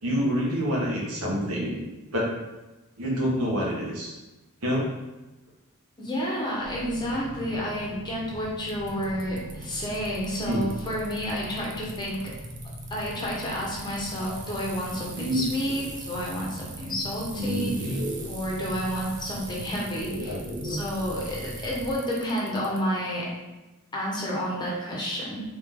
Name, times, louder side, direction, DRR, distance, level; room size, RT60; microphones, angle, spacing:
voice 1, 0.0-1.8 2.1-2.3 3.0-4.1 4.6-4.9 10.5-10.6 15.1-15.8 17.4-18.3 20.0-20.8, equal, 75° right, -4 dB, 1.4 m, -28 dB
voice 2, 6.0-12.3 12.9-18.0 18.3-20.3 20.6-23.3 23.9-25.4, equal, 20° left, -4 dB, 1.0 m, -30 dB
sound 1, 6.6-21.9, equal, 10° right, 1.2 m, -41 dB
Bicycle, 8.7-22.8, right 4 dB, 35° right, 0.6 m, -44 dB
3.9 x 3.4 x 3.7 m, 1.1 s
head